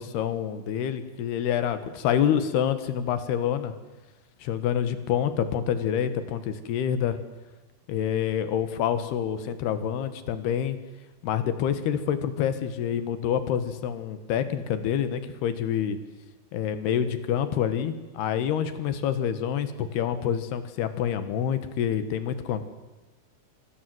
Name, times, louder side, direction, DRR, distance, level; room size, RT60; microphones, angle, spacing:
voice 1, 0.0-3.7 4.4-7.2 7.9-10.8 11.2-16.0 16.5-22.7, left 9 dB, 85° left, 11 dB, 3.6 m, -27 dB
27.5 x 24.5 x 7.9 m, 1.2 s
omnidirectional pair, 4.5 m